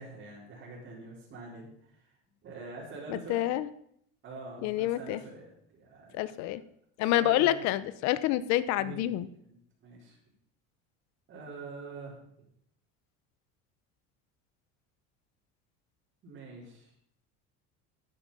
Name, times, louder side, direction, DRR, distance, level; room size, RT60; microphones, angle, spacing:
voice 1, 0.0-2.0 2.4-3.4 4.2-6.6 7.1-7.6 8.8-9.1 9.4-10.2 11.3-12.1 16.2-16.9, right 3 dB, 40° right, -7 dB, 4.2 m, -45 dB
voice 2, 3.1-3.7 4.6-5.2 6.1-6.6 7.0-9.3, left 13 dB, 60° left, 16 dB, 0.9 m, -28 dB
12.0 x 10.0 x 5.6 m, 0.71 s
cardioid pair, 145°, 31 cm